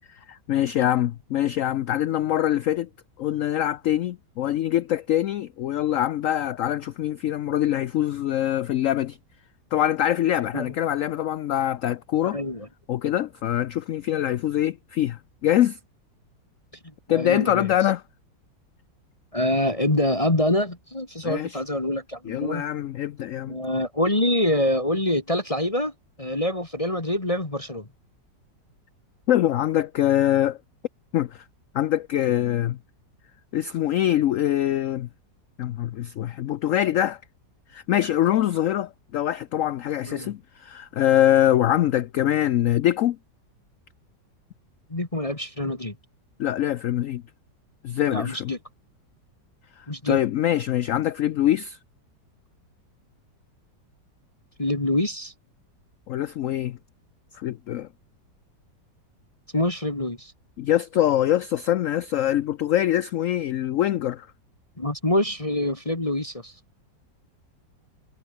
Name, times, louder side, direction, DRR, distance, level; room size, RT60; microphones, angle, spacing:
voice 1, 0.1-2.9 3.2-9.2 9.7-12.4 12.9-15.8 17.1-18.0 21.2-21.6 22.2-23.6 29.3-30.6 31.1-31.4 31.7-32.8 33.5-35.1 35.6-37.2 37.7-43.2 46.4-47.2 47.8-48.5 49.8-51.8 56.1-56.8 57.3-57.9 60.6-64.3, left 12 dB, 70° left, 0.8 m, -24 dB
voice 2, 12.2-12.7 17.1-17.7 19.3-22.6 23.5-25.9 26.2-27.9 40.1-40.3 44.9-45.9 48.1-48.6 49.9-50.2 54.6-55.3 59.5-60.3 64.8-66.5, left 1 dB, 20° left, 2.1 m, -25 dB
omnidirectional pair, 1.9 m